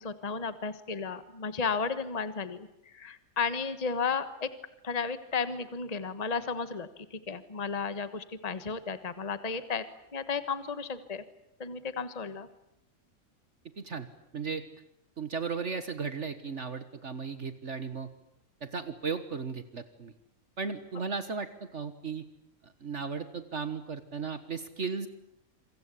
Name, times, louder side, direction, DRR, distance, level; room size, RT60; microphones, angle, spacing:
voice 1, 0.0-4.5 4.8-9.8 10.1-11.2 11.6-12.5, left 5 dB, 30° left, 12 dB, 1.4 m, -33 dB
voice 2, 13.8-14.1 14.3-14.6 15.2-18.1 18.6-20.1 20.6-22.2 22.6-25.1, right 5 dB, 55° right, 11 dB, 1.7 m, -35 dB
27.5 x 25.0 x 8.5 m, 0.79 s
omnidirectional pair, 1.5 m